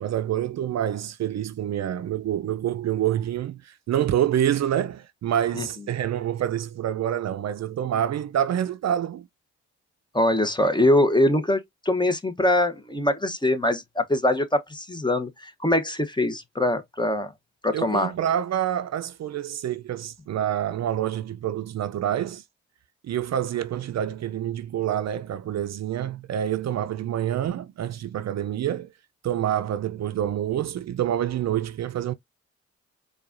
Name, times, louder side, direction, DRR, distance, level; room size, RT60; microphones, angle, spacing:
voice 1, 0.0-9.3 17.7-22.4 23.0-28.9 29.2-32.1, right 10 dB, 55° right, 0.5 m, -27 dB
voice 2, 10.1-17.3 17.6-18.1, left 1 dB, 15° left, 0.9 m, -23 dB
4.5 x 2.4 x 2.6 m
supercardioid pair, 45°, 31 cm